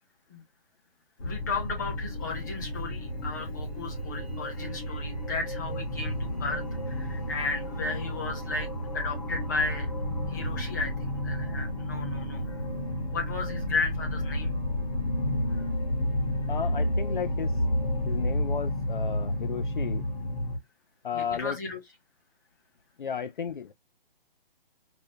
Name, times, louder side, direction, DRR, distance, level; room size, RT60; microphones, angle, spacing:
sound 1, 1.2-20.6, left 1 dB, 40° left, 1.2 m, -31 dB
voice 1, 1.2-8.7 8.9-9.9 10.3-12.6 13.1-14.5 15.5-15.7 21.1-21.8, left 4 dB, 20° left, 0.9 m, -34 dB
sound 2, 7.8-16.7, right 2 dB, 25° right, 0.6 m, -45 dB
voice 2, 16.5-17.6 18.1-20.1 21.0-21.6 23.0-23.7, left 7 dB, 60° left, 0.5 m, -34 dB
5.0 x 2.1 x 2.7 m
hypercardioid pair, 175°, 29 cm